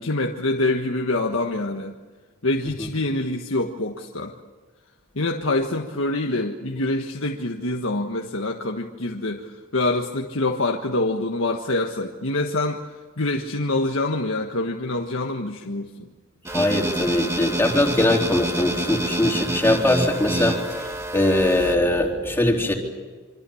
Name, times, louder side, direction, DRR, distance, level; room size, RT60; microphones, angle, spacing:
voice 1, 0.0-1.9 2.4-4.3 5.1-16.1, left 2 dB, 85° left, 2 dB, 1.5 m, -25 dB
voice 2, 16.5-22.7, left 1 dB, 10° left, 0 dB, 3.7 m, -21 dB
sound 1, 16.5-21.8, right 1 dB, 15° right, 2.0 m, -27 dB
27.5 x 25.0 x 7.2 m, 1.4 s
head